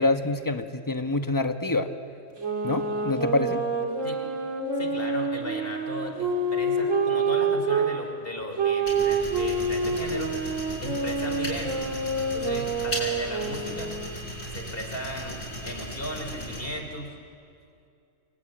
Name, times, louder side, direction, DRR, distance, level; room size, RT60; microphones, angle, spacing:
voice 1, 0.0-1.9 2.6-3.6, left 2 dB, 15° left, 7 dB, 1.1 m, -26 dB
sound 1, 2.4-7.9 8.6-14.1, right 3 dB, 65° right, 2.8 m, -27 dB
voice 2, 4.8-10.3 10.8-11.9 12.3-13.9 14.5-17.1, equal, 45° left, 4 dB, 3.4 m, -36 dB
sound 2, 8.8-16.7, equal, 70° left, 6.6 m, -36 dB
29.0 x 23.0 x 8.9 m, 2.5 s
omnidirectional pair, 1.4 m